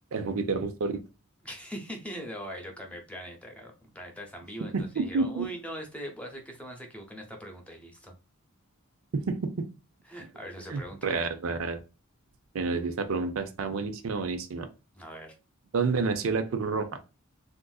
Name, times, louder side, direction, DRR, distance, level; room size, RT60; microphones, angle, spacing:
voice 1, 0.1-1.0 4.7-5.5 9.1-9.5 10.7-11.8 12.5-14.7 15.7-16.9, right 4 dB, 70° right, 0.5 m, -29 dB
voice 2, 1.4-8.1 10.0-11.2 14.9-15.3, equal, 5° left, 0.7 m, -41 dB
3.6 x 2.5 x 2.3 m
head